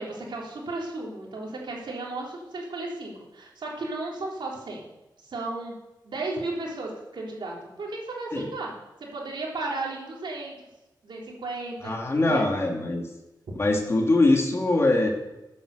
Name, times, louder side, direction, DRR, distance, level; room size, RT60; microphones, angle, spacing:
voice 1, 0.0-4.9 5.2-5.7 6.0-8.7 9.0-10.5 11.0-11.9 12.2-12.4, right 2 dB, 80° right, -2 dB, 3.7 m, -34 dB
voice 2, 11.8-13.0 13.6-15.1, left 2 dB, 35° left, 1 dB, 2.4 m, -22 dB
14.0 x 8.8 x 6.7 m, 0.99 s
wide cardioid pair, 155°, 8 cm